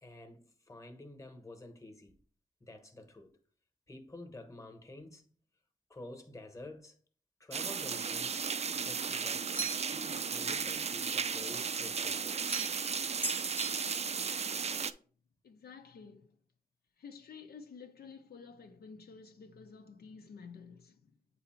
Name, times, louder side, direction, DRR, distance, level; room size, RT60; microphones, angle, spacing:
voice 1, 0.0-2.2 2.6-3.4 3.9-5.3 5.9-7.0 7.4-8.4 8.7-12.4, left 2 dB, 20° left, 1.1 m, -50 dB
sound 1, 7.5-14.9, right 6 dB, 40° right, 0.4 m, -35 dB
sound 2, 9.5-10.0 12.5-12.9 13.2-14.2, right 3 dB, 10° right, 0.8 m, -38 dB
voice 2, 15.4-16.4 17.0-21.2, left 5 dB, 75° left, 0.7 m, -51 dB
7.9 x 2.7 x 4.3 m
wide cardioid pair, 90°, 16 cm